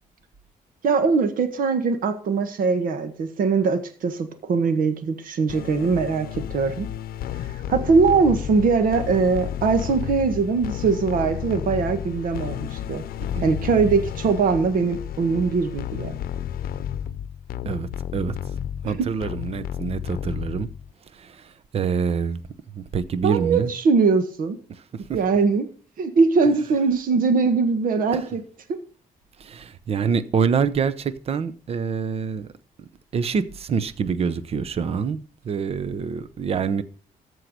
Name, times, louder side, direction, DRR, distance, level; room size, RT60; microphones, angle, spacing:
voice 1, 0.8-6.9 7.7-13.0 13.4-16.2 18.8-19.1 23.2-24.6 25.1-25.7 26.0-28.4 28.7-28.8, right 4 dB, 65° right, 1.5 m, -21 dB
sound 1, 5.5-20.9, left 10 dB, 80° left, 0.7 m, -32 dB
voice 2, 13.2-13.5 17.7-18.3 18.8-20.7 21.1-22.4 22.7-23.7 24.7-25.2 28.1-28.3 29.4-32.5 32.8-35.2 35.4-36.8, right 6 dB, 40° right, 0.8 m, -26 dB
14.0 x 4.7 x 6.6 m
cardioid pair, 145°, 15 cm